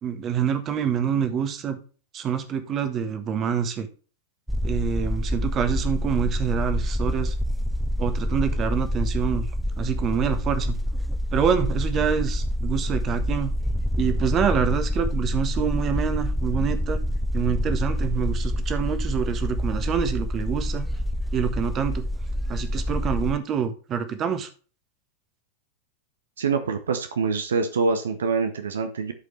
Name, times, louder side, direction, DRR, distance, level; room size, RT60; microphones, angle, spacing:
voice 1, 0.0-1.8 2.1-3.9 4.6-7.3 8.0-9.5 9.8-10.8 11.3-13.5 14.0-17.0 17.3-20.9 21.3-22.0 22.5-24.5, right 8 dB, 30° right, 9 dB, 1.4 m, -26 dB
sound 1, 4.5-23.4, equal, ahead, 0.3 m, -27 dB
voice 2, 26.4-29.1, right 4 dB, 65° right, 7 dB, 1.0 m, -25 dB
12.5 x 5.2 x 3.2 m, 0.38 s
figure-of-eight pair, 90°, 0 cm